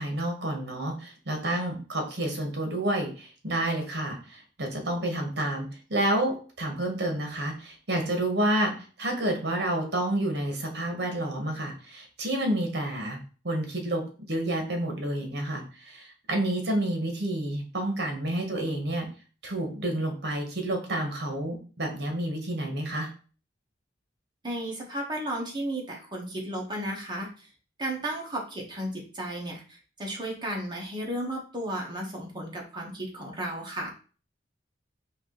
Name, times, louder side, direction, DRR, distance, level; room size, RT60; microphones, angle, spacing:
voice 1, 0.0-8.7 9.0-13.2 13.4-14.0 14.3-19.1 19.4-23.1, right 1 dB, 65° right, 3 dB, 1.3 m, -29 dB
voice 2, 24.4-27.5 27.8-33.9, right 1 dB, 25° right, -1 dB, 1.2 m, -34 dB
4.7 x 2.9 x 3.8 m, 0.38 s
head